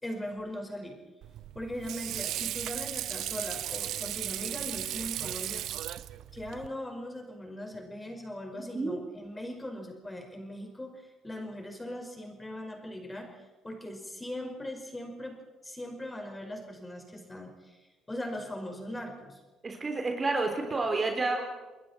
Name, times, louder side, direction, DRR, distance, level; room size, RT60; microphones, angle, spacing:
voice 1, 0.0-1.0 1.5-5.6 6.3-15.4 15.6-17.8 18.1-19.4, left 1 dB, 15° left, 3 dB, 5.4 m, -40 dB
Water / Sink (filling or washing), 1.2-6.7, right 12 dB, 60° right, 0.8 m, -36 dB
voice 2, 19.6-21.4, right 3 dB, 30° right, 3 dB, 3.8 m, -29 dB
29.0 x 21.0 x 4.5 m, 1.2 s
figure-of-eight pair, 50°, 0 cm